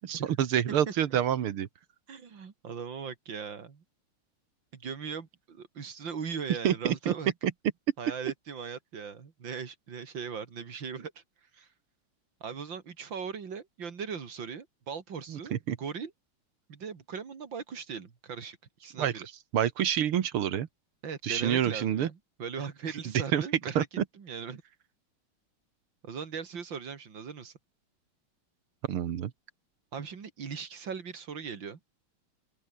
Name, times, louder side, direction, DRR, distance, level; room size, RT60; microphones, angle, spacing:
voice 1, 0.0-1.7 6.6-7.1 15.3-15.8 19.0-19.1 19.5-20.7 21.2-22.1 23.3-23.4 23.8-24.0 28.9-29.3, right 10 dB, 85° right, 2.2 m, -27 dB
voice 2, 2.1-3.8 4.7-7.3 8.0-11.2 11.5-11.7 12.4-16.1 16.7-19.3 21.0-23.9 24.1-24.6 26.0-27.5 29.9-31.8, right 6 dB, 60° right, 3.1 m, -39 dB
open air
omnidirectional pair, 2.3 m